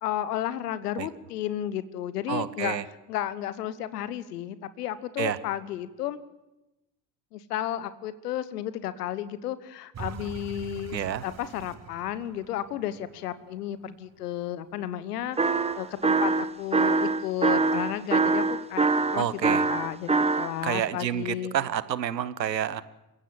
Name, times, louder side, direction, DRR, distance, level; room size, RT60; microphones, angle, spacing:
voice 1, 0.0-2.8 3.1-6.2 7.3-21.6, left 11 dB, 70° left, 16 dB, 1.2 m, -33 dB
voice 2, 2.3-2.8 5.2-5.4 10.9-11.2 19.2-19.6 20.6-22.8, right 10 dB, 80° right, 17 dB, 0.9 m, -29 dB
sound 1, 9.9-15.0 15.5-15.6, right 6 dB, 30° right, 1.9 m, -44 dB
sound 2, 15.4-20.5, right 4 dB, 10° right, 1.0 m, -24 dB
29.0 x 16.0 x 7.4 m, 0.99 s
figure-of-eight pair, 60°, 50 cm